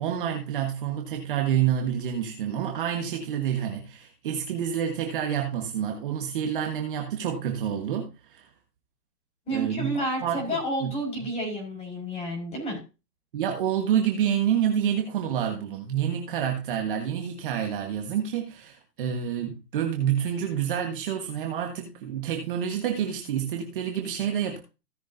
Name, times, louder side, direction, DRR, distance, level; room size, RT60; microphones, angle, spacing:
voice 1, 0.0-8.5 9.5-10.9 11.2-11.3 13.3-24.6, right 9 dB, 30° right, 1.5 m, -28 dB
voice 2, 9.4-12.8, right 1 dB, 15° left, 5.2 m, -30 dB
17.0 x 6.3 x 2.7 m
hypercardioid pair, 150°, 49 cm